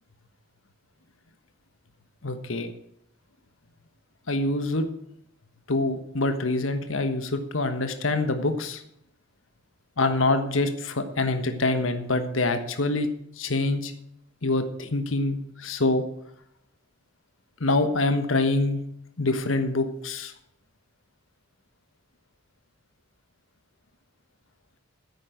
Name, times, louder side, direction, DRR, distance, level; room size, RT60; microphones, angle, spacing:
voice 1, 2.2-2.7 4.3-4.9 5.7-8.8 10.0-13.1 13.4-13.9 14.4-16.0 17.6-18.8 19.2-20.3, left 2 dB, 80° left, 8 dB, 1.3 m, -25 dB
10.5 x 8.8 x 7.7 m, 0.76 s
head